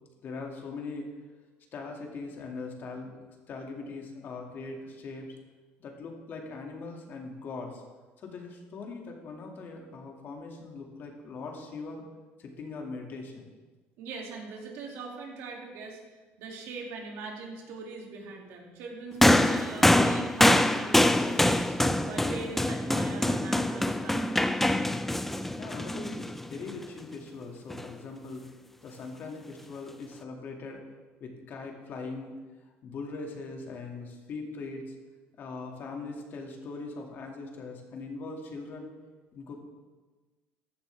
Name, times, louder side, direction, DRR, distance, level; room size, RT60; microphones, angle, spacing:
voice 1, 0.2-1.1 1.7-3.2 3.5-5.3 5.8-7.8 8.2-12.1 12.4-13.5 25.5-28.4 28.8-30.8 31.2-32.3 32.8-34.9 35.4-38.9 39.3-39.6, left 3 dB, 45° left, 1 dB, 2.2 m, -40 dB
voice 2, 14.0-16.0 16.4-24.6, right 4 dB, 70° right, -1 dB, 2.6 m, -42 dB
sound 1, 19.2-26.7 27.7-27.8, left 1 dB, 5° left, 0.5 m, -24 dB
14.5 x 11.0 x 3.4 m, 1.3 s
cardioid pair, 125°, 5 cm